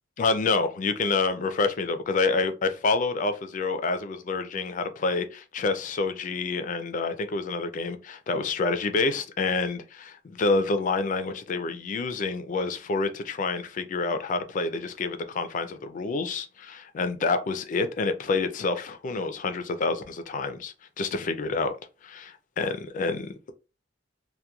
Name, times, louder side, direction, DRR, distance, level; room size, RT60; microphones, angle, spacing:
voice 1, 0.2-9.8 10.2-21.7 22.0-23.5, left 3 dB, 45° left, 0.4 m, -28 dB
2.9 x 2.1 x 2.2 m
head